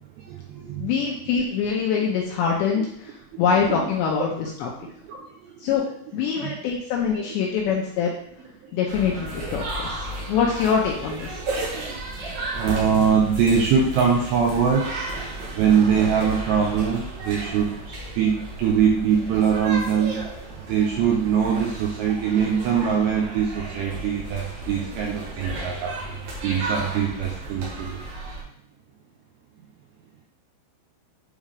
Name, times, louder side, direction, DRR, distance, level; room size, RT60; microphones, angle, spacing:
voice 1, 0.2-0.9 3.3-3.4 3.7-3.9 4.8-5.7 6.3-6.6 8.6-8.7 11.4-11.8 12.5-14.9 15.6-20.3 20.7-26.1 26.4-28.0, right 7 dB, 85° right, -2 dB, 2.5 m, -23 dB
voice 2, 0.8-4.7 5.6-5.9 6.1-8.1 8.7-11.4, left 6 dB, 90° left, -2 dB, 2.6 m, -24 dB
sound 1, 8.9-28.4, right 2 dB, 65° right, 2.5 m, -34 dB
8.5 x 3.6 x 3.4 m, 0.69 s
omnidirectional pair, 5.7 m